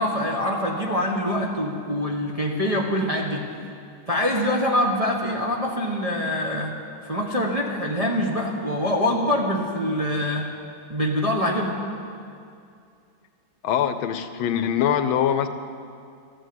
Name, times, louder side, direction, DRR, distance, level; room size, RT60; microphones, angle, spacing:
voice 1, 0.0-3.5 4.1-6.7 7.0-10.5 10.9-11.7, left 1 dB, 25° right, -1 dB, 0.9 m, -24 dB
voice 2, 13.6-15.5, left 9 dB, 80° left, 10 dB, 1.5 m, -23 dB
14.0 x 10.5 x 7.8 m, 2.4 s
omnidirectional pair, 2.2 m